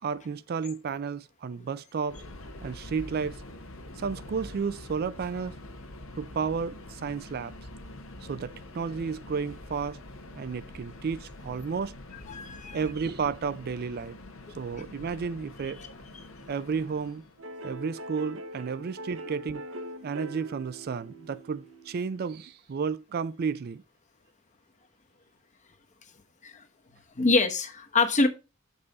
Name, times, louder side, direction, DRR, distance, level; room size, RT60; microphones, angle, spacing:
voice 1, 0.0-2.2 2.6-3.4 4.0-5.5 6.2-7.5 8.2-10.0 10.3-11.9 12.7-14.2 14.5-15.8 16.5-17.2 17.6-19.6 20.0-23.8, right 5 dB, 50° right, 0.4 m, -32 dB
Subway metro underground, 2.1-17.4, left 1 dB, 85° left, 1.3 m, -45 dB
voice 2, 12.3-12.8 26.4-26.6 27.2-28.3, left 3 dB, 35° left, 1.0 m, -25 dB
sound 1, 17.4-22.5, right 1 dB, 75° right, 1.0 m, -43 dB
6.7 x 5.5 x 4.0 m
head